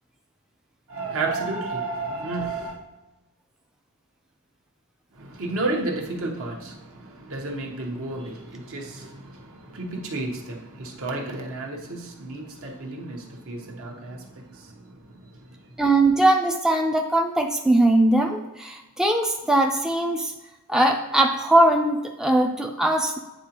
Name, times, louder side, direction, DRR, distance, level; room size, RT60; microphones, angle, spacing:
voice 1, 0.9-2.8 5.2-15.3, right 2 dB, 65° right, 0 dB, 1.0 m, -32 dB
voice 2, 15.8-20.3 20.7-23.2, right 1 dB, 5° right, 1 dB, 0.3 m, -20 dB
9.0 x 3.8 x 2.9 m, 1.1 s
head